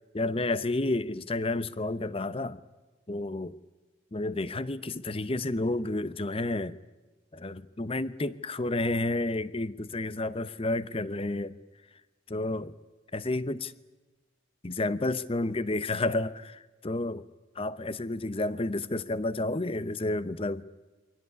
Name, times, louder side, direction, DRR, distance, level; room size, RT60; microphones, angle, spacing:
voice 1, 0.1-2.6 3.1-3.6 4.1-6.8 7.3-11.6 12.3-12.7 13.1-13.7 14.6-17.3 17.5-20.6, left 2 dB, 30° left, 16 dB, 0.8 m, -30 dB
24.0 x 18.0 x 9.7 m, 1.2 s
head